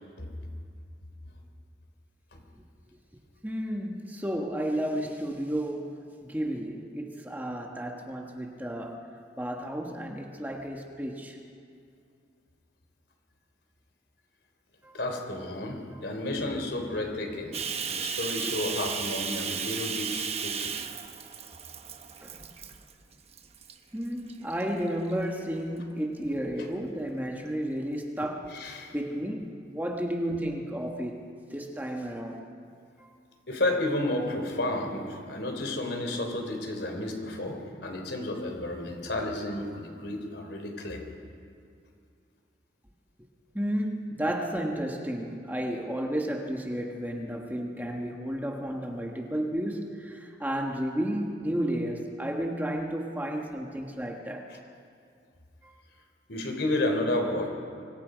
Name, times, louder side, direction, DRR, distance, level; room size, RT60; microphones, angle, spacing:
voice 1, 3.4-9.1 9.4-11.4 14.8-15.0 15.9-16.1 22.2-22.4 23.9-31.2 31.5-32.5 33.0-33.1 43.5-54.5 55.6-55.7, equal, 10° right, 1 dB, 1.5 m, -32 dB
voice 2, 14.9-17.6 17.9-20.7 28.5-28.9 33.5-41.0 54.5-54.6 56.3-57.5, left 1 dB, 65° left, 3 dB, 3.8 m, -31 dB
Bathtub (filling or washing), 17.5-22.9 23.3-23.7 24.3-25.1, right 7 dB, 35° right, 1.0 m, -34 dB
26.0 x 24.5 x 5.1 m, 2.4 s
head